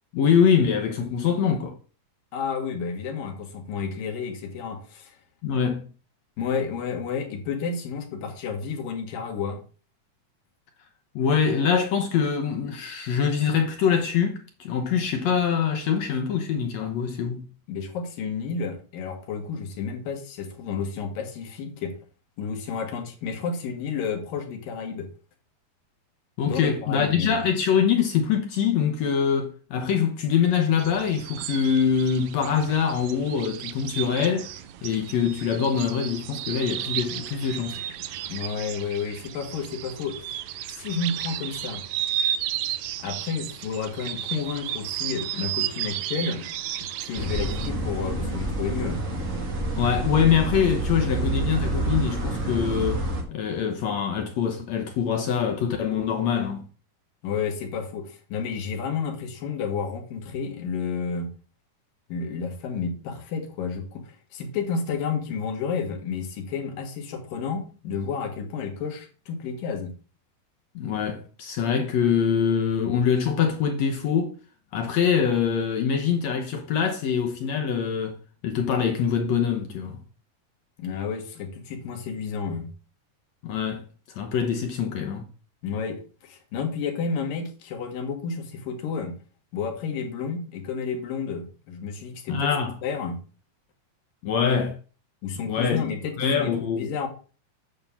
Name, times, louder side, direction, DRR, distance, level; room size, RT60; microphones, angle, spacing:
voice 1, 0.1-1.7 5.4-5.9 11.2-17.5 26.4-34.5 34.8-37.8 49.8-53.1 53.3-56.7 70.8-74.3 74.7-78.2 78.4-80.0 83.4-83.8 84.2-85.2 92.3-92.7 94.2-94.8 95.5-95.8 96.2-96.9, left 7 dB, 65° left, 1.8 m, -24 dB
voice 2, 2.3-5.2 6.4-9.6 17.7-21.9 22.4-25.1 26.4-27.4 38.3-40.4 40.7-41.8 43.0-46.5 47.0-49.0 57.2-61.3 62.1-69.9 80.8-82.7 85.6-89.1 89.5-92.5 92.8-93.2 95.2-97.1, left 5 dB, 85° left, 3.3 m, -31 dB
sound 1, 30.8-47.7, right 11 dB, 85° right, 1.5 m, -33 dB
sound 2, 47.2-53.2, right 2 dB, 45° right, 1.0 m, -28 dB
9.0 x 3.6 x 7.0 m
omnidirectional pair, 3.8 m